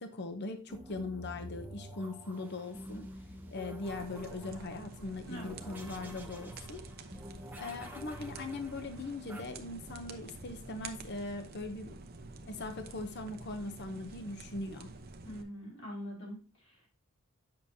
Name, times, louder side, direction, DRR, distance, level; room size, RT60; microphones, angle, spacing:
voice 1, 0.0-3.1 3.5-6.8 7.6-12.0 12.5-14.9, left 2 dB, 50° left, 7 dB, 0.7 m, -40 dB
sound 1, 0.7-9.4, equal, 10° right, 0.7 m, -48 dB
sound 2, 3.9-15.4, right 3 dB, 45° right, 0.8 m, -49 dB
voice 2, 5.2-5.6 15.2-16.9, equal, 65° left, -3 dB, 3.7 m, -44 dB
8.6 x 6.2 x 2.8 m, 0.37 s
head